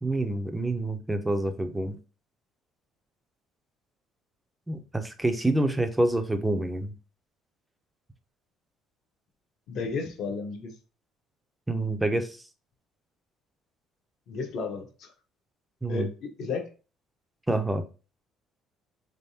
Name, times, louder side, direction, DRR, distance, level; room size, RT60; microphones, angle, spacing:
voice 1, 0.0-2.0 4.7-6.9 11.7-12.4 15.8-16.1 17.5-17.8, right 1 dB, 5° right, 8 dB, 0.4 m, -27 dB
voice 2, 9.7-10.7 14.3-15.1 15.9-16.7, left 4 dB, 55° left, 4 dB, 0.9 m, -33 dB
3.8 x 3.4 x 2.7 m, 0.34 s
cardioid pair, 155°, 0 cm